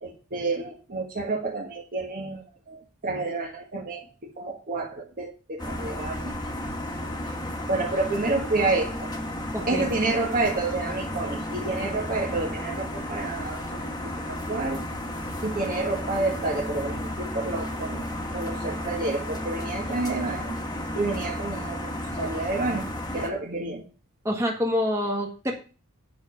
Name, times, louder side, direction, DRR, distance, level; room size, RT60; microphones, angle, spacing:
voice 1, 0.0-6.3 7.7-9.1 9.7-14.0 14.5-14.8 15.4-18.0 18.3-20.6 20.9-22.9 23.1-23.8, right 3 dB, 40° right, -1 dB, 1.5 m, -29 dB
sound 1, 5.6-23.3, left 1 dB, 20° left, 1.4 m, -33 dB
voice 2, 24.2-25.5, left 1 dB, 15° right, 0 dB, 1.7 m, -26 dB
9.4 x 6.6 x 5.7 m, 0.35 s
head